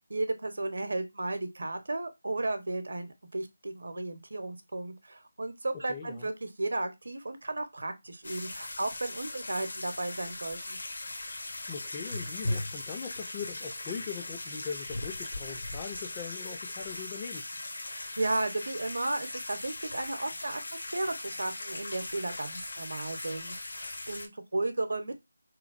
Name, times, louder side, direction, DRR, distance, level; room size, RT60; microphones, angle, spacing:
voice 1, 0.1-10.8 17.9-25.2, right 2 dB, 70° right, 0.7 m, -34 dB
voice 2, 5.7-6.3 11.7-17.5, left 6 dB, 20° left, 0.4 m, -41 dB
sound 1, 8.2-24.3, left 2 dB, 70° left, 0.9 m, -39 dB
3.5 x 3.1 x 2.4 m
figure-of-eight pair, 165°, 0 cm